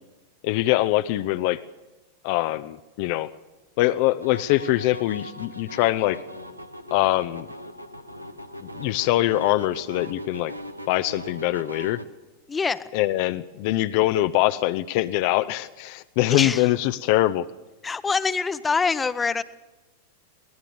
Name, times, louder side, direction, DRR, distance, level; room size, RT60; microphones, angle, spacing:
voice 1, 0.4-1.6 2.2-3.3 3.8-6.2 6.9-7.4 8.6-10.5 10.9-12.0 12.9-17.5, left 16 dB, 45° left, 10 dB, 0.7 m, -23 dB
sound 1, 4.2-12.1, equal, 90° right, 1.2 m, -40 dB
voice 2, 12.5-12.8 16.3-16.6 17.8-19.4, left 5 dB, 15° left, 14 dB, 0.9 m, -24 dB
23.0 x 19.5 x 7.0 m, 1.1 s
figure-of-eight pair, 90°, 0 cm